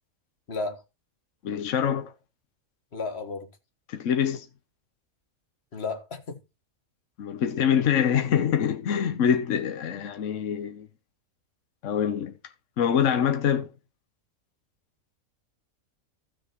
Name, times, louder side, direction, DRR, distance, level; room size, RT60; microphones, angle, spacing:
voice 1, 0.5-0.8 2.9-3.5 5.7-6.4, left 3 dB, 50° left, 1.7 m, -33 dB
voice 2, 1.4-2.1 3.9-4.5 7.2-10.9 11.8-12.3 12.8-13.7, left 8 dB, 65° left, 1.2 m, -25 dB
15.0 x 6.6 x 3.0 m
omnidirectional pair, 1.4 m